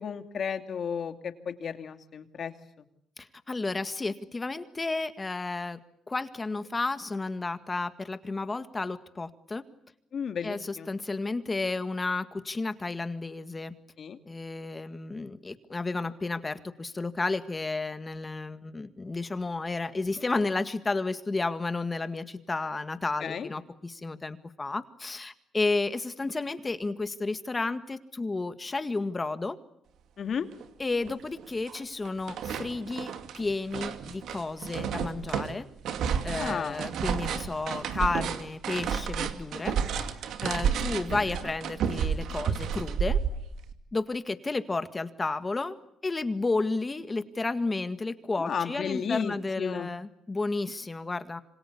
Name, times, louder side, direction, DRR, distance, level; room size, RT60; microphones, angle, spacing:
voice 1, 0.0-2.5 10.1-10.9 14.0-14.2 23.2-23.5 30.2-30.5 36.3-36.9 41.1-41.4 48.4-49.9, left 7 dB, 55° left, 8 dB, 2.5 m, -33 dB
voice 2, 3.2-5.8 6.1-9.6 10.4-13.7 14.3-29.6 30.8-35.7 36.2-39.8 40.4-43.2 43.9-45.8 46.0-51.4, left 3 dB, 25° left, 11 dB, 1.8 m, -32 dB
sound 1, 30.6-30.7 31.1-31.8 32.0-43.7, right 7 dB, 75° right, 2.4 m, -31 dB
27.0 x 26.0 x 8.5 m, 0.74 s
cardioid pair, 90°, 0 cm